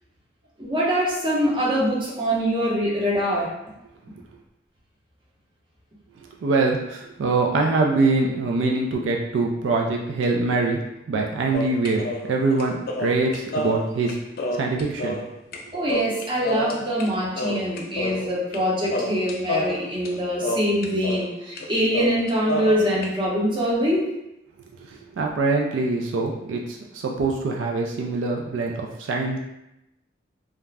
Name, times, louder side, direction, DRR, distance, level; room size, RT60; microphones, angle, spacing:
voice 1, 0.6-3.5 15.7-24.0, equal, 25° right, -6 dB, 0.7 m, -24 dB
voice 2, 6.4-10.8 11.1-14.2 14.5-15.2 24.9-29.4, right 3 dB, 85° right, 0 dB, 0.3 m, -24 dB
sound 1, 11.5-15.6 15.9-17.1 17.3-18.6 18.9-21.3 21.6-21.7 21.9-23.1, left 1 dB, 50° left, 0.3 m, -29 dB
2.4 x 2.1 x 3.2 m, 0.87 s
head